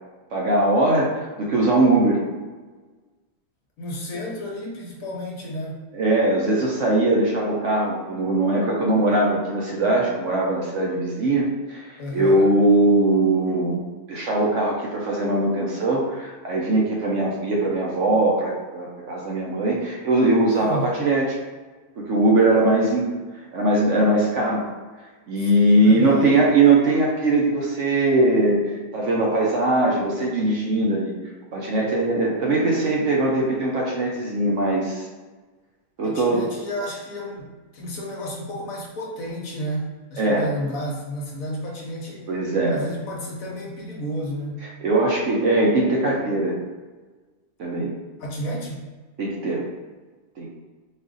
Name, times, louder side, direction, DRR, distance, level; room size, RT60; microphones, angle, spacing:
voice 1, 0.3-2.2 5.9-13.8 14.1-21.4 22.0-23.1 23.5-24.6 25.3-28.6 28.9-31.1 31.5-35.1 36.0-36.5 40.2-40.4 42.3-42.8 44.8-46.6 47.6-47.9 49.2-49.7 50.4-50.5, right 2 dB, 60° right, -3 dB, 0.9 m, -20 dB
voice 2, 3.8-5.9 12.0-12.5 20.6-20.9 25.4-26.5 36.0-42.3 42.7-44.6 48.2-48.8, equal, 65° left, -2 dB, 1.2 m, -32 dB
4.1 x 2.5 x 3.8 m, 1.3 s
omnidirectional pair, 1.6 m